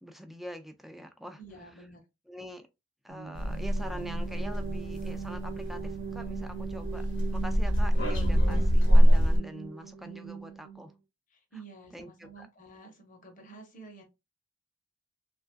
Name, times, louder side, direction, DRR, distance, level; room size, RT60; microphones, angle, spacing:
voice 1, 0.0-1.4 2.3-2.7 3.0-10.9 11.5-11.6 11.9-12.5, equal, ahead, 0.4 m, -44 dB
voice 2, 1.4-2.0 11.3-14.0, right 3 dB, 45° left, 1.0 m, -50 dB
sound 1, 3.1-10.9, right 7 dB, 65° right, 0.5 m, -40 dB
sound 2, 3.3-9.4, equal, 75° left, 1.1 m, -25 dB
3.1 x 2.5 x 2.2 m
head